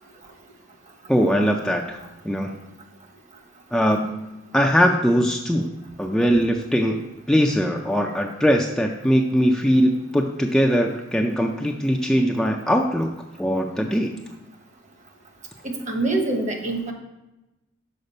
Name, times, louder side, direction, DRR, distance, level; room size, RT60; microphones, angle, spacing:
voice 1, 1.1-2.0 2.2-2.6 3.7-4.3 4.5-5.7 6.0-7.0 7.3-13.1 13.4-14.1, equal, 5° left, 1 dB, 0.4 m, -21 dB
voice 2, 15.6-16.9, right 2 dB, 40° right, 3 dB, 1.0 m, -25 dB
6.6 x 4.8 x 5.4 m, 0.99 s
head